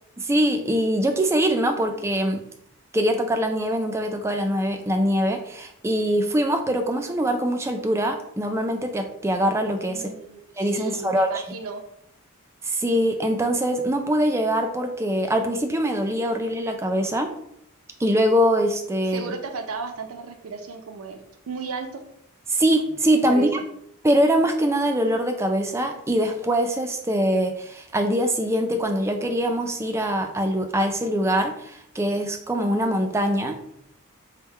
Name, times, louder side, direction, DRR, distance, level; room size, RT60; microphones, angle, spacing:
voice 1, 0.2-2.4 2.9-10.1 10.6-11.3 12.6-17.3 18.0-19.3 22.5-23.5 24.0-33.7, equal, 10° right, 5 dB, 0.3 m, -23 dB
voice 2, 9.9-11.8 19.1-21.2 21.5-22.0 23.2-23.5, right 4 dB, 70° right, 5 dB, 0.5 m, -34 dB
3.5 x 2.1 x 4.3 m, 0.73 s
head